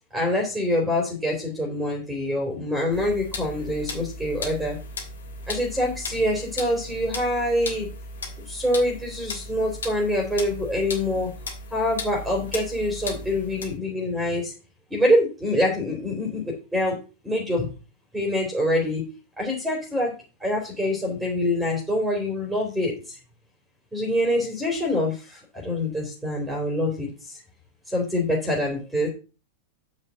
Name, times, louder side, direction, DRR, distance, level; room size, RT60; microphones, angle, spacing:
voice 1, 0.1-4.8 5.5-7.9 8.5-11.3 11.7-14.5 14.9-17.0 17.2-17.7 18.1-19.0 19.4-20.1 20.4-23.2 23.9-27.4 27.9-29.1, left 1 dB, 5° right, 0 dB, 3.3 m, -25 dB
sound 1, 2.9-13.8, left 2 dB, 70° left, 2.9 m, -36 dB
9.4 x 5.4 x 6.2 m, 0.33 s
figure-of-eight pair, 90°, 0 cm